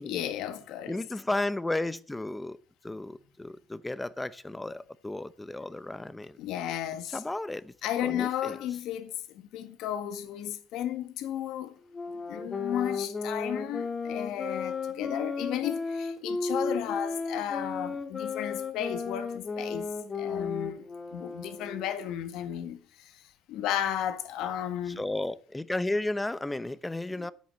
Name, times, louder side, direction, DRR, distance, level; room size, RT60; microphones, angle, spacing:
voice 1, 0.0-1.0 6.4-7.2 7.8-11.7 12.1-23.2 23.5-25.0 27.1-27.3, left 11 dB, 75° left, 1.6 m, -34 dB
voice 2, 0.9-2.6 2.8-6.4 7.1-7.7 8.0-8.6 25.0-27.3, left 2 dB, 10° left, 0.7 m, -33 dB
sound 1, 11.9-21.9, left 4 dB, 30° left, 2.3 m, -34 dB
10.5 x 8.4 x 6.9 m
cardioid pair, 110°, 0 cm